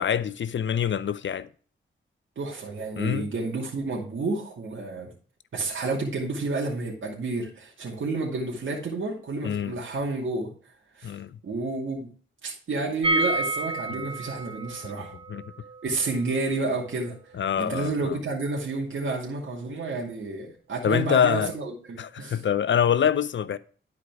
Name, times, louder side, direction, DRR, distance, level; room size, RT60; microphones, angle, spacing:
voice 1, 0.0-1.5 3.0-3.3 9.4-9.8 11.0-11.3 13.9-14.0 15.0-15.4 17.4-18.2 20.8-21.5 22.0-23.6, left 8 dB, 60° left, 0.6 m, -25 dB
voice 2, 2.4-5.1 5.5-10.5 11.0-11.1 11.4-12.1 12.4-15.1 15.8-17.2 17.6-22.4, right 3 dB, 70° right, 2.4 m, -30 dB
sound 1, 13.0-18.8 19.1-19.2 19.4-19.5, right 2 dB, 25° right, 0.8 m, -32 dB
11.0 x 4.8 x 4.7 m
cardioid pair, 75°, 21 cm